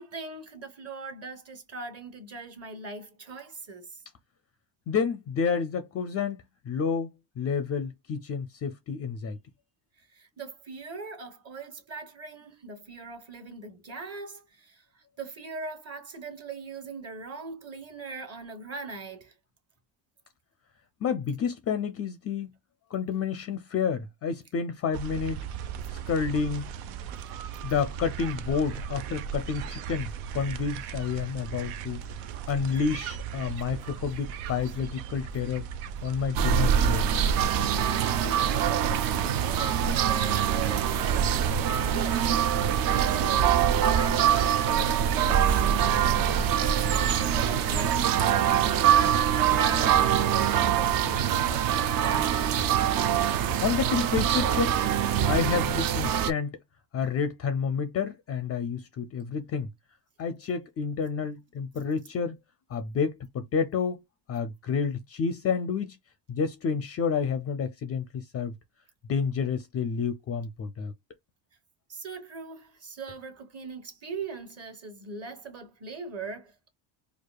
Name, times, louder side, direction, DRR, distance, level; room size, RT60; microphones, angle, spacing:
voice 1, 0.0-4.0 10.0-19.3 37.7-42.5 42.9-52.7 71.9-76.7, right 4 dB, 30° right, 1.2 m, -41 dB
voice 2, 4.9-9.4 21.0-22.5 22.9-25.4 25.9-26.6 27.6-32.0 32.5-35.7 36.0-37.1 53.2-53.3 53.6-54.9 55.3-56.5 56.9-59.7 60.2-62.4 62.7-64.0 64.3-66.0 66.3-68.5 69.1-70.9, left 6 dB, 35° left, 0.4 m, -29 dB
sound 1, 24.9-44.5, right 7 dB, 90° right, 0.7 m, -38 dB
sound 2, 36.4-56.3, right 9 dB, 50° right, 0.5 m, -24 dB
sound 3, 45.2-56.2, right 1 dB, 15° right, 1.0 m, -42 dB
4.7 x 2.4 x 2.2 m
cardioid pair, 140°, 47 cm